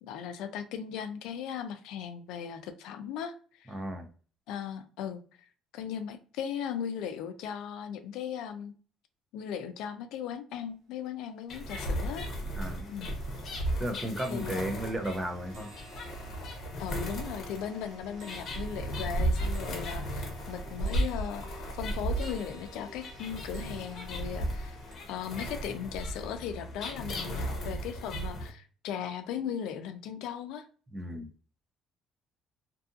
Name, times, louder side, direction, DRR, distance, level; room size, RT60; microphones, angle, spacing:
voice 1, 0.0-3.8 4.5-5.5 5.7-8.7 9.3-12.3 12.9-13.1 14.3-14.7 16.8-24.8 25.1-30.7, left 8 dB, 80° left, 0.3 m, -38 dB
voice 2, 3.7-4.1 12.5-12.9 13.8-15.7 30.9-31.3, right 1 dB, 15° right, 0.4 m, -34 dB
sound 1, 10.6-10.7 11.0-11.6 12.0-12.3 12.6-24.9, right 1 dB, 90° right, 0.9 m, -52 dB
sound 2, 11.5-28.5, right 1 dB, 45° left, 0.8 m, -35 dB
2.6 x 2.4 x 2.5 m
cardioid pair, 155°, 0 cm